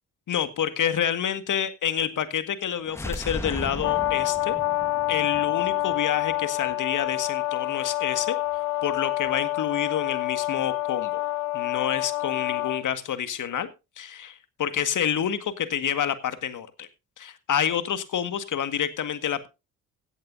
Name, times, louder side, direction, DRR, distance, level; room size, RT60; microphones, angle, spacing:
voice 1, 0.3-4.5 5.1-8.4 8.8-11.2 11.5-13.7 14.0-16.9 17.2-19.5, left 9 dB, 50° left, 11 dB, 1.8 m, -28 dB
sound 1, 2.8-6.7, left 1 dB, 5° left, 1.4 m, -37 dB
Brass instrument, 3.8-12.8, left 18 dB, 80° left, 0.8 m, -27 dB
16.5 x 12.0 x 2.6 m, 0.28 s
figure-of-eight pair, 45°, 40 cm